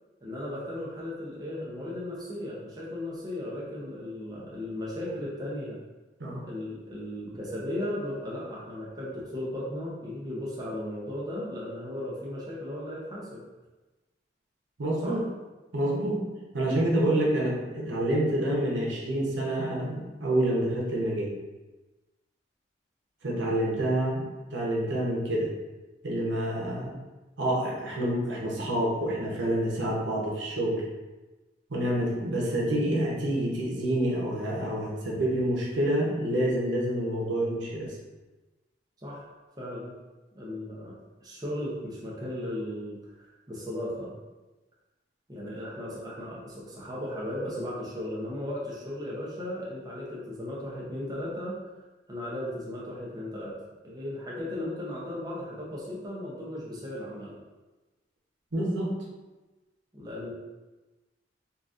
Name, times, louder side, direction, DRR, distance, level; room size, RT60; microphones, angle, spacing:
voice 1, 0.2-5.8 6.4-13.4 15.0-15.2 39.0-39.3 39.6-39.9 40.3-40.9 41.2-43.0 43.5-44.1 45.3-51.6 52.1-53.6 53.8-57.4 59.9-60.3, left 1 dB, 20° right, -6 dB, 0.6 m, -36 dB
voice 2, 14.8-15.2 15.7-16.3 16.5-21.3 23.2-24.2 24.5-25.5 26.0-26.9 27.4-30.9 31.7-38.0 58.5-58.9, right 1 dB, 85° right, -4 dB, 0.8 m, -27 dB
3.9 x 2.4 x 2.4 m, 1.1 s
head